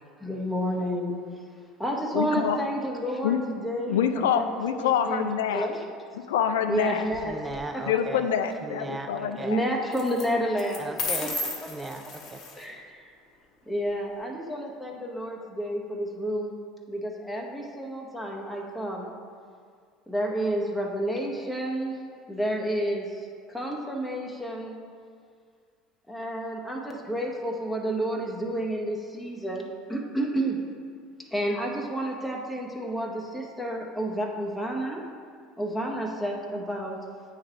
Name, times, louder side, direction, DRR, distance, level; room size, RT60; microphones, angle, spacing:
voice 1, 0.2-1.2 1.8-4.0 4.3-5.8 6.7-7.4 7.7-7.8 9.2-10.9 11.2-11.3 12.6-13.1 13.7-16.6 16.9-19.1 20.1-22.0 22.3-24.7 26.1-30.6 31.3-35.0 35.6-37.0, right 1 dB, 5° left, -1 dB, 0.9 m, -30 dB
voice 2, 2.1-2.6 3.2-3.4 3.9-5.7 6.3-7.0 7.9-9.6, left 8 dB, 80° left, 8 dB, 0.3 m, -26 dB
sound 1, 7.0-7.6 9.9-10.3 10.6-12.6, left 4 dB, 50° left, 1.0 m, -33 dB
voice 3, 7.2-8.2 8.6-9.5 10.8-11.3 11.7-12.4, right 2 dB, 20° right, 5 dB, 0.5 m, -37 dB
8.5 x 3.2 x 3.8 m, 2.1 s
hypercardioid pair, 80°, 0 cm